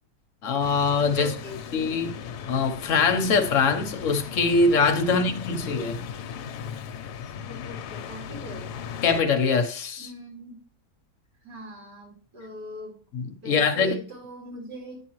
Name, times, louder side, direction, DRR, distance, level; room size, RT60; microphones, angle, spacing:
voice 1, 0.4-1.3 1.7-2.1 2.5-6.0 9.0-10.1 13.1-13.9, left 4 dB, 55° left, 1.1 m, -23 dB
sound 1, 0.6-9.2, left 7 dB, 75° left, 1.2 m, -37 dB
voice 2, 1.2-2.1 5.1-5.3 7.5-8.8 10.0-10.6 11.4-12.9 13.4-15.0, equal, 70° right, 4.8 m, -41 dB
10.0 x 7.4 x 3.0 m
omnidirectional pair, 1.8 m